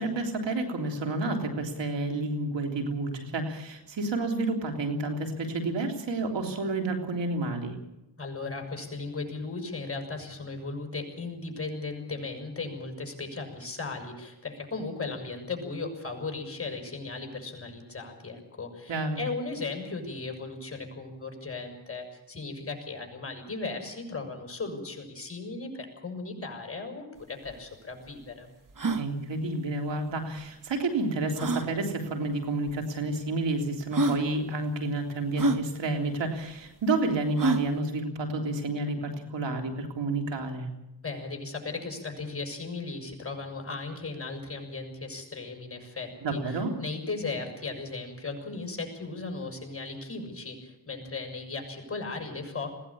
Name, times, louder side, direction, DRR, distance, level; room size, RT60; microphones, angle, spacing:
voice 1, 0.0-7.7 18.9-19.2 28.9-40.7 46.2-46.7, right 2 dB, 85° right, 4 dB, 3.4 m, -30 dB
voice 2, 8.2-28.5 41.0-52.7, left 3 dB, 30° left, 3 dB, 6.7 m, -37 dB
sound 1, 27.2-27.3 27.5-27.6 28.1-28.2 28.7-29.0 30.4-30.5 31.4-31.7 32.7-32.8 33.5-33.6 33.9-34.2 35.4-35.6 37.4-37.7, right 3 dB, 45° right, 1.8 m, -27 dB
21.0 x 16.5 x 8.7 m, 0.91 s
cardioid pair, 60°, 43 cm